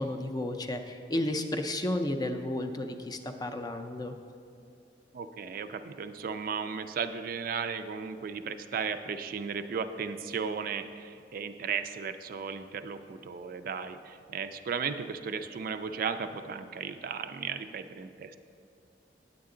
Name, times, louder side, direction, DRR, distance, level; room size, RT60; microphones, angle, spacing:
voice 1, 0.0-4.1, left 1 dB, 20° left, 7 dB, 0.4 m, -32 dB
voice 2, 5.1-18.4, right 6 dB, 50° right, 10 dB, 0.3 m, -35 dB
9.4 x 8.2 x 3.8 m, 2.4 s
head